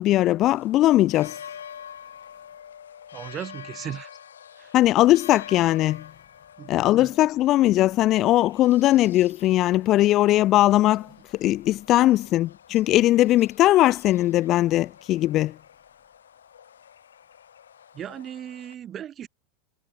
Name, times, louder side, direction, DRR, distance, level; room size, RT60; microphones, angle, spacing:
voice 1, 0.0-1.4 4.7-6.1 6.7-15.6, left 15 dB, 45° left, 0.4 m, -20 dB
sound 1, 0.5-18.7, left 8 dB, 85° left, 6.0 m, -47 dB
voice 2, 3.1-4.1 4.6-4.7 6.6-7.1 12.0-12.1 17.9-19.3, right 10 dB, 35° right, 0.7 m, -37 dB
hypercardioid pair, 90°, 0 cm